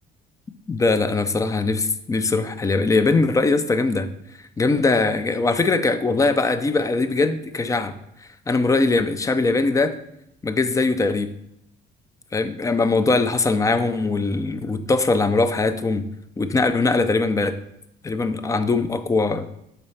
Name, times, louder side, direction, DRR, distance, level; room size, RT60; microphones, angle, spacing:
voice 1, 0.7-4.1 4.6-7.9 8.5-9.9 10.4-11.3 12.3-16.0 16.4-17.5 18.0-19.5, left 3 dB, 20° left, 11 dB, 0.4 m, -21 dB
4.2 x 4.0 x 5.5 m, 0.78 s
cardioid pair, 110°, 17 cm